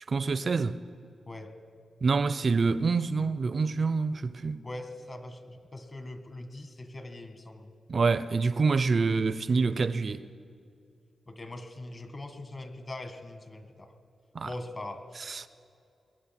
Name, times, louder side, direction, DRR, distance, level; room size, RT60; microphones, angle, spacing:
voice 1, 0.1-0.8 2.0-4.6 7.9-10.3 14.3-14.5 15.2-15.5, right 4 dB, 55° right, 0.6 m, -26 dB
voice 2, 4.6-7.7 11.3-13.9 14.4-15.5, left 1 dB, 35° left, 1.5 m, -42 dB
22.0 x 10.0 x 5.9 m
cardioid pair, 65°, 0 cm